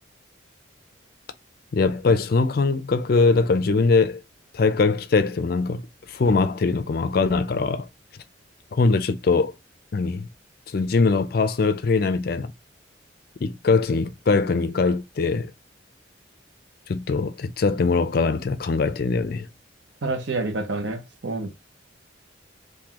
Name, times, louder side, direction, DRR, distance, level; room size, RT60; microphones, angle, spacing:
voice 1, 1.7-4.2 4.5-7.9 8.7-9.5 9.9-10.3 10.7-12.5 13.4-15.5 16.9-19.5, left 4 dB, 50° left, 0.4 m, -22 dB
voice 2, 20.0-21.5, right 2 dB, 65° right, 0.8 m, -28 dB
3.8 x 2.6 x 2.9 m
head